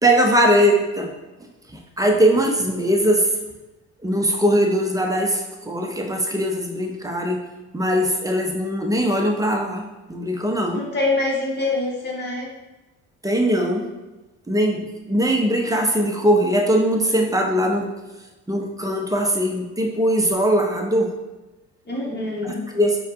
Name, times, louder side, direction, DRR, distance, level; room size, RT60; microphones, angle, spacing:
voice 1, 0.0-1.1 1.7-3.3 4.0-7.4 7.7-9.8 10.1-10.8 13.2-13.9 14.5-17.9 18.5-21.1 22.4-23.0, equal, 10° right, 1 dB, 0.8 m, -20 dB
voice 2, 10.7-12.5 21.9-22.6, left 2 dB, 30° left, -3 dB, 1.4 m, -25 dB
4.4 x 2.4 x 3.6 m, 1.1 s
hypercardioid pair, 60°, 35 cm